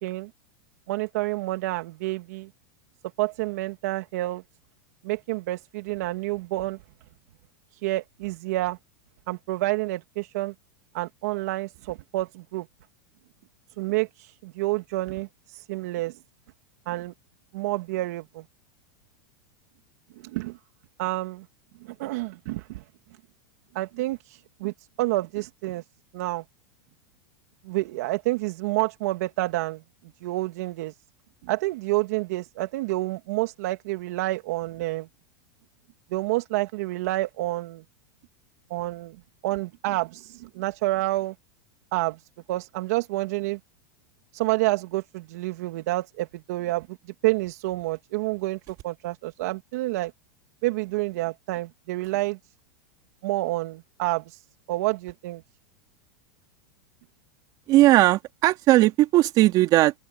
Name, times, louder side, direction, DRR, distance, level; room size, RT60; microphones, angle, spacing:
voice 1, 0.9-2.5 3.2-4.4 5.0-6.8 7.8-8.8 9.3-10.5 10.9-12.7 13.8-16.1 16.9-17.1 17.5-18.4 20.2-20.6 21.0-21.4 21.8-22.8 23.7-25.8 26.1-26.4 27.7-29.8 30.2-30.9 31.4-35.1 36.1-37.8 38.7-39.2 39.4-41.3 41.9-42.2 42.5-43.6 44.3-46.9 47.2-48.6 48.8-50.1 50.6-52.4 53.2-54.4 54.7-55.4, right 19 dB, 65° right, 2.0 m, -28 dB
voice 2, 57.7-59.9, right 16 dB, 45° right, 3.2 m, -18 dB
open air
hypercardioid pair, 115°, 9 cm